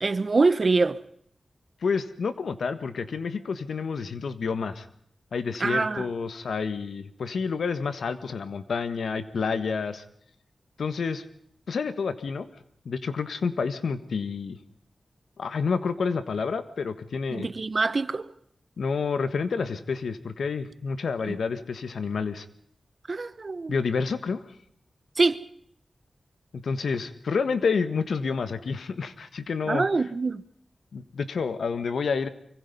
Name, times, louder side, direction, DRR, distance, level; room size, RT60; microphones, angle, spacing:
voice 1, 0.0-1.0 5.6-6.1 17.3-18.3 21.3-21.4 23.1-23.8 25.2-25.4 29.7-30.4, right 3 dB, 55° right, 1.1 m, -24 dB
voice 2, 1.8-4.9 5.3-10.0 10.8-11.2 11.7-12.5 12.8-14.6 15.4-17.5 18.8-22.4 23.7-24.4 26.6-29.9 30.9-32.3, left 5 dB, 85° left, 1.6 m, -29 dB
25.0 x 24.0 x 5.5 m
cardioid pair, 50°, 0 cm